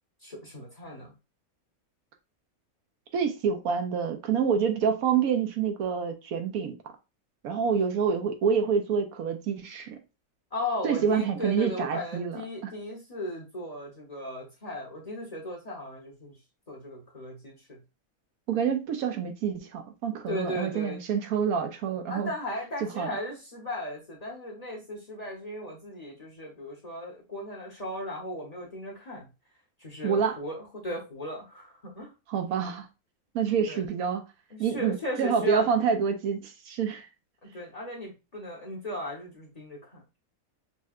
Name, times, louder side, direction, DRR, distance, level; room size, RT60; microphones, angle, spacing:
voice 1, 0.2-1.1 10.5-16.3 16.7-17.8 20.3-21.0 22.1-29.3 29.8-32.1 33.7-33.8 34.5-35.7 37.5-40.0, left 1 dB, 30° left, 0.9 m, -36 dB
voice 2, 3.1-6.7 7.4-10.0 10.8-12.7 18.5-22.3 22.8-23.1 30.0-30.4 32.3-32.9 33.3-34.2 34.6-37.1, right 6 dB, 80° right, 1.1 m, -27 dB
5.4 x 2.2 x 2.4 m
omnidirectional pair, 1.5 m